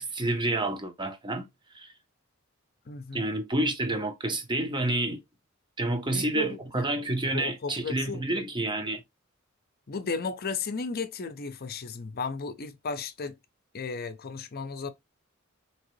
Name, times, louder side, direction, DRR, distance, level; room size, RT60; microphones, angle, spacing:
voice 1, 0.0-1.5 1.7-1.9 3.1-5.2 5.8-9.0, right 2 dB, 20° right, 0.7 m, -29 dB
voice 2, 2.9-3.2 5.9-6.8 7.3-8.2 9.9-13.4 13.7-14.9, left 4 dB, 45° left, 0.6 m, -35 dB
3.7 x 2.9 x 3.1 m
head